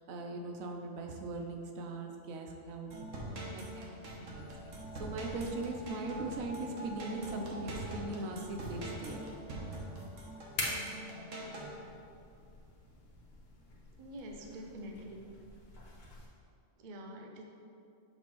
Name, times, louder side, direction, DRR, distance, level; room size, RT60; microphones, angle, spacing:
voice 1, 0.0-2.9 3.5-3.9 4.2-4.4 4.9-9.3, right 2 dB, 85° right, 2 dB, 1.1 m, -40 dB
sound 1, 2.9-11.7, right 1 dB, 70° right, 1.4 m, -43 dB
sound 2, 4.4-16.3, left 2 dB, 65° left, 1.3 m, -47 dB
voice 2, 14.0-15.3 16.8-17.4, equal, 50° right, 2 dB, 0.7 m, -46 dB
6.6 x 5.4 x 3.1 m, 2.5 s
omnidirectional pair, 1.4 m